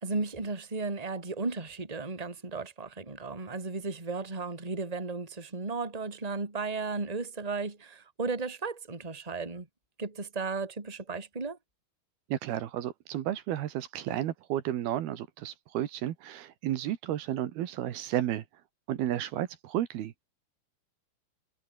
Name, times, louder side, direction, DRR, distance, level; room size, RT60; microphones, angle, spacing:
voice 1, 0.0-9.7 10.0-11.6, right 3 dB, 10° right, 2.6 m, -35 dB
voice 2, 12.3-18.4 18.9-20.2, right 12 dB, 75° right, 3.3 m, -32 dB
omnidirectional pair, 4.6 m